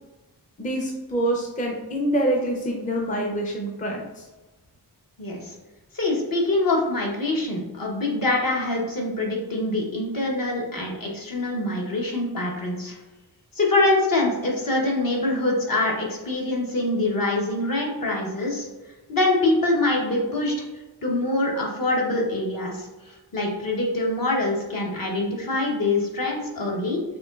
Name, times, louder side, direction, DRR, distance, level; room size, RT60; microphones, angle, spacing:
voice 1, 0.6-4.3, right 1 dB, 20° left, 0 dB, 0.5 m, -26 dB
voice 2, 5.2-5.5 5.9-13.0 13.5-18.7 19.1-20.6 21.0-27.0, left 2 dB, 55° left, -2 dB, 1.1 m, -24 dB
5.1 x 3.0 x 2.4 m, 1.2 s
wide cardioid pair, 95°, 42 cm